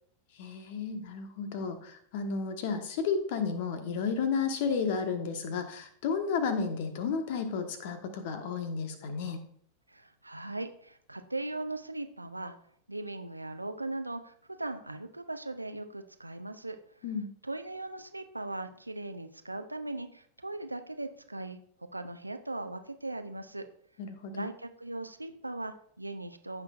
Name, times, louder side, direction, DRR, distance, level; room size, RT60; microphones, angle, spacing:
voice 1, 0.4-9.4 17.0-17.3 24.0-24.4, left 5 dB, 50° left, 7 dB, 1.3 m, -32 dB
voice 2, 9.9-12.6 12.9-16.8 17.4-21.6 21.9-23.6 24.3-26.6, right 2 dB, 85° right, 8 dB, 0.7 m, -39 dB
15.0 x 6.0 x 2.5 m, 0.62 s
figure-of-eight pair, 90°, 0 cm